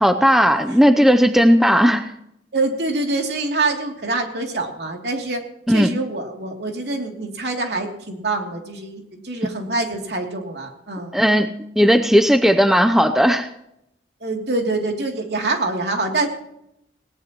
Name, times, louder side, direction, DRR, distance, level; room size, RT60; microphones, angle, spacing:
voice 1, 0.0-2.1 5.7-5.9 11.1-13.5, equal, ahead, 9 dB, 0.6 m, -16 dB
voice 2, 2.5-5.4 5.7-11.1 14.2-16.3, right 2 dB, 70° right, 2 dB, 2.8 m, -25 dB
19.0 x 18.0 x 3.0 m, 0.80 s
head